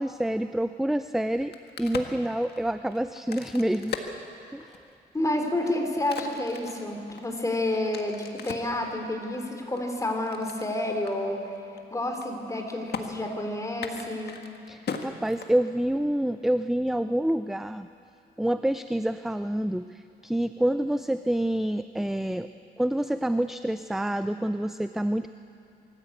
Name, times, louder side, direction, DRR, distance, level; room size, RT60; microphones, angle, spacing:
voice 1, 0.0-1.5 1.8-4.1 4.5-4.8 14.7-17.9 18.4-22.5 22.8-25.3, right 1 dB, ahead, 11 dB, 0.4 m, -27 dB
Crack, 1.3-4.9 5.4-8.8 9.3-10.7 11.1-11.2 11.4-11.8 12.1-12.6 12.9-13.0 13.7-15.9, left 6 dB, 60° left, 1.7 m, -39 dB
voice 2, 5.1-11.4 11.9-14.4, left 1 dB, 15° left, 3 dB, 3.2 m, -29 dB
24.0 x 14.0 x 8.4 m, 2.5 s
cardioid pair, 100°, 19 cm